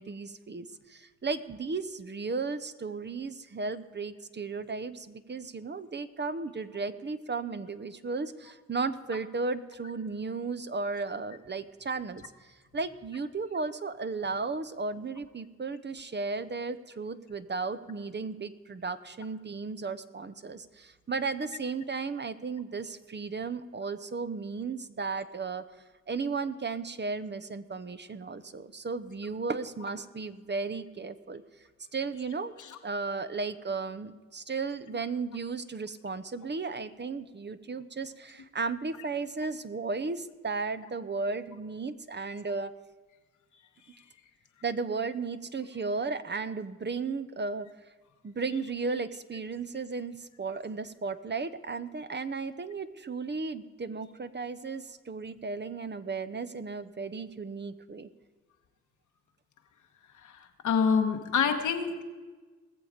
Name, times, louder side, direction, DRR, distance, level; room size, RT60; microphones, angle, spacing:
voice 1, 0.0-25.6 26.1-31.4 31.9-32.5 32.8-42.7 44.6-47.7 48.2-58.1, right 4 dB, 35° right, 12 dB, 0.8 m, -35 dB
voice 2, 60.2-62.0, left 6 dB, 80° left, 5 dB, 1.3 m, -27 dB
20.0 x 7.1 x 5.1 m, 1.3 s
supercardioid pair, 45°, 29 cm